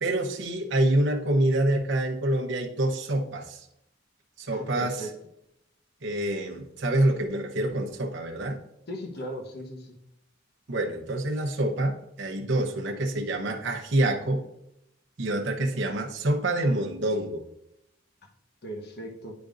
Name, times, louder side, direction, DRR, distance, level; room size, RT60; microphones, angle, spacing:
voice 1, 0.0-3.7 4.4-5.1 6.0-8.6 10.7-14.4 15.2-17.4, right 1 dB, 65° right, 0 dB, 0.9 m, -26 dB
voice 2, 4.5-5.1 8.9-10.0 18.6-19.3, equal, 55° left, 1 dB, 1.0 m, -37 dB
9.4 x 5.1 x 2.5 m, 0.80 s
head